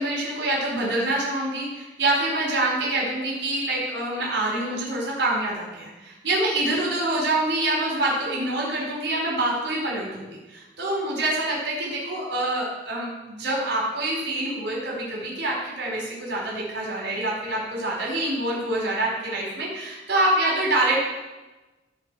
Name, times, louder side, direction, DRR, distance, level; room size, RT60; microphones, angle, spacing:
voice 1, 0.0-21.0, right 1 dB, 75° right, -4 dB, 4.6 m, -26 dB
16.0 x 5.5 x 7.7 m, 1.1 s
head